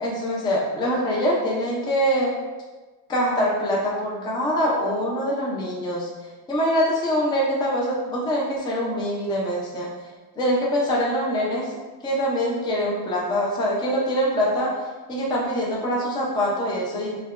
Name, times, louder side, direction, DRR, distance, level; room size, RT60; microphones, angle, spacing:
voice 1, 0.0-2.3 3.1-6.1 6.5-9.9 10.4-11.8 12.0-14.7 15.1-17.2, equal, 15° left, -4 dB, 0.3 m, -24 dB
5.3 x 2.2 x 2.3 m, 1.3 s
cardioid pair, 165°, 39 cm